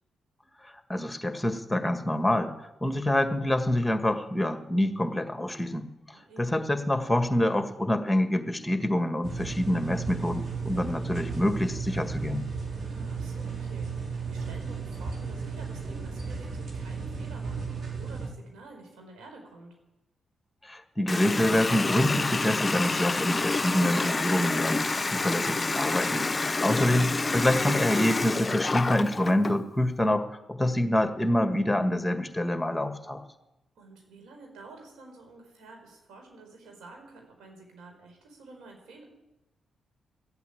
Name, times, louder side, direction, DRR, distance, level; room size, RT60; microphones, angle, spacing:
voice 1, 0.9-5.9 6.4-12.5 20.6-33.2, left 1 dB, 10° left, 7 dB, 1.8 m, -26 dB
voice 2, 6.1-6.6 12.8-19.7 33.7-39.0, right 3 dB, 80° right, 2 dB, 4.6 m, -50 dB
sound 1, 9.2-18.3, right 5 dB, 60° right, 4.0 m, -34 dB
Water tap faucet, 21.1-29.6, left 3 dB, 30° left, 0.5 m, -28 dB
15.0 x 8.3 x 8.8 m, 0.95 s
supercardioid pair, 50°, 0 cm